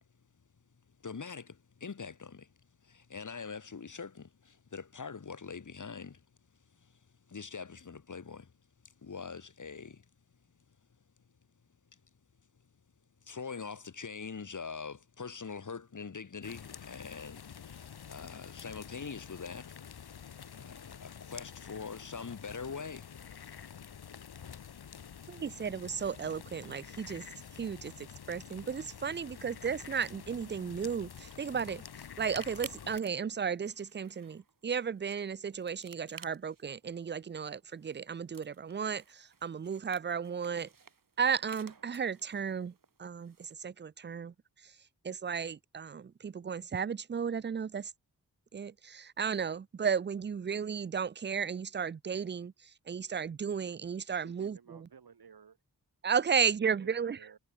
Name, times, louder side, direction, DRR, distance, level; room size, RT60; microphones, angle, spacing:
voice 1, 1.0-2.5 2.8-6.2 6.7-7.0 7.3-8.5 8.8-10.0 11.9-12.0 13.2-19.8 20.5-23.1, left 5 dB, 50° left, 3.1 m, -43 dB
sound 1, 16.4-33.0, left 7 dB, 80° left, 1.9 m, -48 dB
voice 2, 25.3-27.3 27.5-31.8 32.2-40.7 41.2-42.7 43.0-44.3 45.0-47.9 48.5-54.6 56.0-57.2, right 6 dB, 30° right, 0.4 m, -34 dB
sound 2, 30.5-43.5, right 5 dB, 60° right, 5.6 m, -55 dB
voice 3, 54.2-55.6 56.6-57.4, right 6 dB, 75° right, 4.8 m, -55 dB
wide cardioid pair, 115°, 38 cm